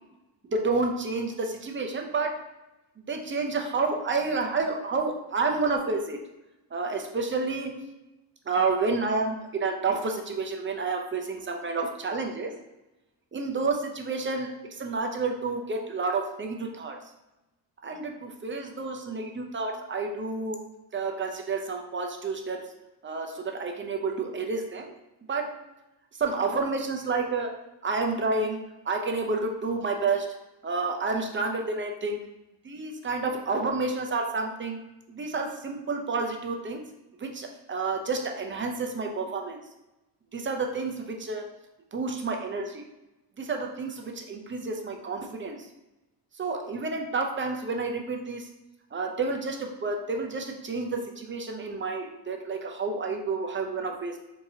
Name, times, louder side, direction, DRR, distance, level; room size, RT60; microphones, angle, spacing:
voice 1, 0.5-2.4 3.1-6.2 6.7-7.7 8.5-12.5 13.3-17.0 17.8-20.6 20.9-22.6 23.0-24.9 25.3-25.6 26.2-27.5 27.8-28.6 28.8-30.3 30.6-32.2 32.6-34.8 35.1-36.8 37.2-39.6 40.3-41.4 41.9-42.8 43.4-45.7 46.4-48.5 48.9-54.2, right 3 dB, 25° right, 3 dB, 0.5 m, -30 dB
4.5 x 2.7 x 2.7 m, 0.99 s
cardioid pair, 105°, 44 cm